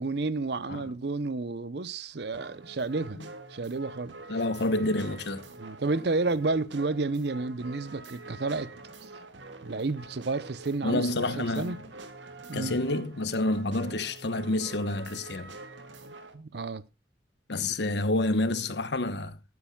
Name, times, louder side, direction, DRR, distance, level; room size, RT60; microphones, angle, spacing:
voice 1, 0.0-3.2 3.5-4.1 5.6-8.7 9.6-11.8 12.5-12.8 16.3-16.8, right 3 dB, 60° right, 0.7 m, -31 dB
sound 1, 2.3-16.4, right 2 dB, 85° right, 1.9 m, -46 dB
voice 2, 4.3-5.5 10.8-11.9 12.5-15.5 17.5-19.4, left 2 dB, 65° left, 1.1 m, -29 dB
19.0 x 9.6 x 2.3 m
head